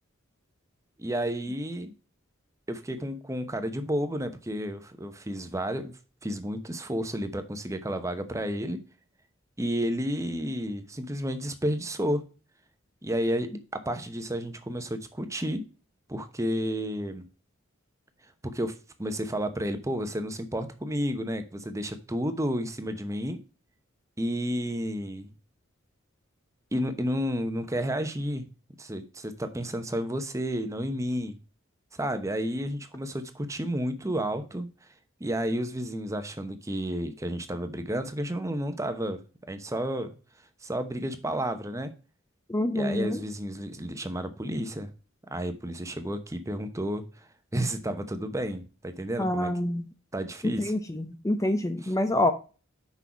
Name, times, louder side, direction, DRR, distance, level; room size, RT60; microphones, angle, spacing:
voice 1, 1.0-1.9 2.7-5.9 6.2-8.8 9.6-12.2 13.0-15.6 16.1-17.2 18.4-23.4 24.2-25.3 26.7-28.5 28.8-31.4 31.9-34.7 35.2-40.1 40.6-41.9 42.7-44.9 45.3-49.5 50.1-50.7 51.8-52.0, equal, 15° right, 9 dB, 0.9 m, -31 dB
voice 2, 42.5-43.2 49.2-49.8 50.6-52.3, left 1 dB, 15° left, 8 dB, 0.6 m, -26 dB
6.3 x 5.5 x 5.9 m, 0.35 s
head